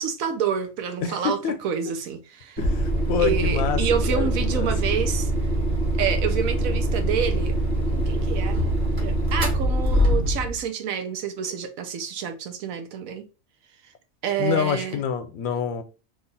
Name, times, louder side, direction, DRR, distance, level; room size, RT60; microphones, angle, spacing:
voice 1, 0.0-2.6 3.2-5.3 6.0-7.5 7.9-8.6 9.0-13.2 14.2-15.0, right 8 dB, 90° right, 1.1 m, -28 dB
voice 2, 1.0-1.6 2.6-3.8 4.1-4.7 14.4-15.8, left 8 dB, 85° left, 1.0 m, -27 dB
sound 1, 2.6-10.6, equal, 35° right, 1.2 m, -23 dB
3.4 x 2.4 x 3.9 m
omnidirectional pair, 1.4 m